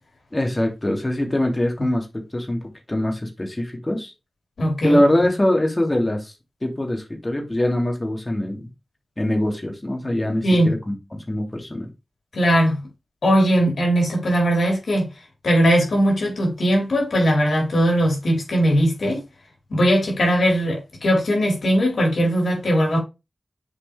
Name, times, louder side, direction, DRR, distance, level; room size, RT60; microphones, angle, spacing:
voice 1, 0.3-2.1 2.3-2.6 2.9-4.1 4.8-6.3 6.6-8.7 9.2-11.9, left 1 dB, 30° left, 2.4 m, -23 dB
voice 2, 4.6-5.0 10.4-10.7 12.3-12.8 13.2-15.1 15.4-19.2 19.7-23.0, equal, 85° left, 3.9 m, -19 dB
7.1 x 5.1 x 3.3 m
cardioid pair, 55°, 0 cm